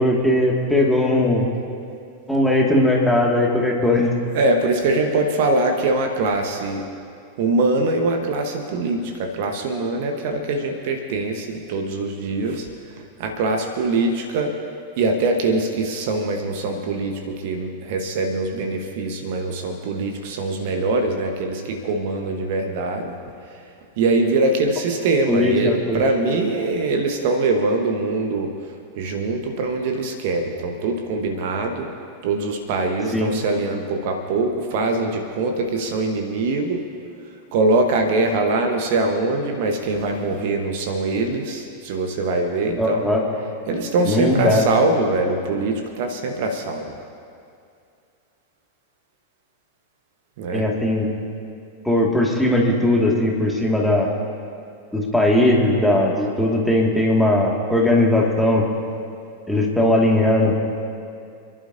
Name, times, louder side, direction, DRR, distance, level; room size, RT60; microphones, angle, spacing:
voice 1, 0.0-1.4 2.3-4.1 25.3-26.0 33.1-33.3 42.8-43.2 44.0-44.6 50.5-51.1 51.8-54.1 54.9-58.6 59.5-60.6, left 1 dB, ahead, -2 dB, 2.2 m, -19 dB
voice 2, 4.3-6.8 7.4-12.7 13.2-14.5 15.0-23.2 24.0-28.5 29.0-31.9 32.2-36.8 37.5-43.1 43.7-46.9 50.4-50.6, right 2 dB, 50° right, 4 dB, 1.3 m, -23 dB
30.0 x 11.0 x 2.8 m, 2.4 s
figure-of-eight pair, 90°, 0 cm